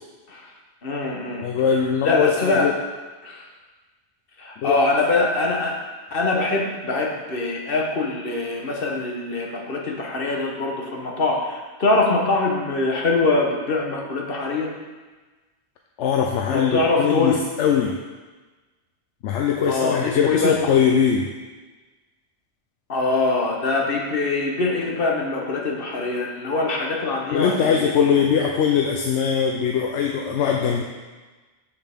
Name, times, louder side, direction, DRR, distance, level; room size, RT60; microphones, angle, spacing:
voice 1, 0.8-1.5 2.0-2.7 3.2-3.5 4.4-5.8 6.1-14.7 16.5-17.4 19.7-20.8 22.9-28.1, left 3 dB, 55° left, 0 dB, 1.2 m, -23 dB
voice 2, 1.4-2.7 4.6-4.8 16.0-18.0 19.2-21.3 27.3-30.8, left 7 dB, 85° left, 2 dB, 0.9 m, -21 dB
7.7 x 6.9 x 3.5 m, 1.3 s
omnidirectional pair, 1.2 m